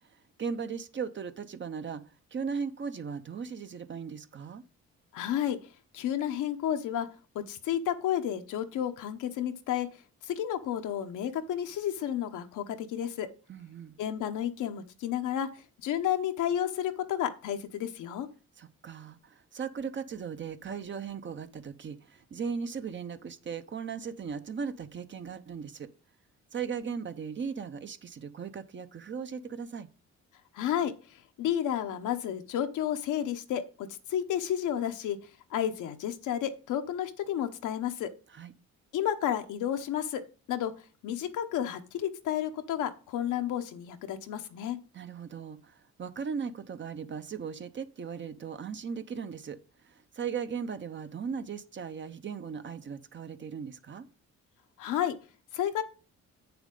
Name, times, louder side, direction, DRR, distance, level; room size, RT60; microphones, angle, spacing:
voice 1, 0.4-2.0 2.3-4.6 13.5-14.0 18.6-25.9 26.5-29.9 38.3-38.5 44.9-49.6 49.8-54.1, right 6 dB, 40° right, 0.8 m, -37 dB
voice 2, 5.1-5.6 5.9-7.1 7.3-9.9 10.2-13.3 14.0-15.5 15.8-18.3 30.5-35.2 35.5-38.1 38.9-40.2 40.5-40.7 41.0-44.8 54.8-55.1 55.5-55.8, left 10 dB, 85° left, 1.0 m, -31 dB
8.3 x 7.0 x 3.8 m
cardioid pair, 90°, 30 cm